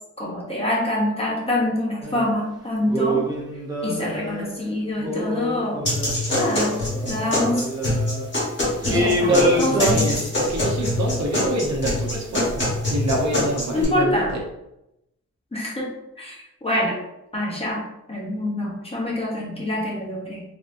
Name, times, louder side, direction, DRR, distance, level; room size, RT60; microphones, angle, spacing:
voice 1, 0.2-3.3 3.8-5.9 6.4-6.8 7.0-7.7 8.8-9.3 9.6-10.1 13.7-14.3 15.5-15.9 16.2-17.0 17.3-17.8 18.1-20.4, left 1 dB, 20° left, -4 dB, 0.7 m, -25 dB
sound 1, 2.0-2.3 2.9-4.6 5.0-8.3 8.9-9.9, right 1 dB, 15° right, 0.5 m, -25 dB
sound 2, 5.8-13.8, left 1 dB, 40° left, 1.1 m, -24 dB
voice 2, 8.7-14.3, right 1 dB, 65° right, 0 dB, 0.7 m, -26 dB
3.3 x 2.6 x 2.5 m, 0.87 s
wide cardioid pair, 165°, 29 cm